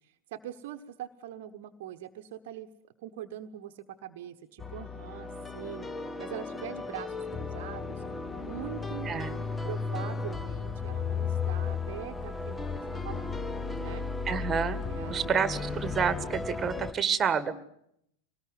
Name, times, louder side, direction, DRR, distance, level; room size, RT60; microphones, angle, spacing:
voice 1, 0.0-2.7 3.0-8.0 8.3-9.1 9.6-13.4 13.8-14.1 14.9-15.4, right 11 dB, 50° right, 8 dB, 1.2 m, -43 dB
sound 1, 4.6-16.9, left 4 dB, 10° left, 1.2 m, -35 dB
voice 2, 14.3-14.8 15.1-17.5, right 6 dB, 20° right, 14 dB, 1.9 m, -29 dB
25.5 x 19.5 x 9.7 m, 0.75 s
figure-of-eight pair, 90°, 0 cm